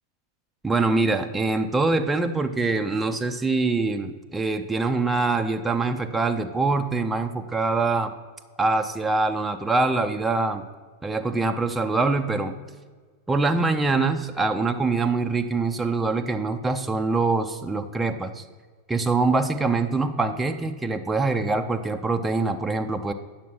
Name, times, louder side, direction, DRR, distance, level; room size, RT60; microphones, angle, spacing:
voice 1, 0.6-8.1 8.6-10.7 11.0-12.5 13.3-18.4 18.9-23.1, right 3 dB, 10° right, 5 dB, 0.7 m, -24 dB
9.2 x 6.5 x 5.9 m, 1.5 s
hypercardioid pair, 100°, 0 cm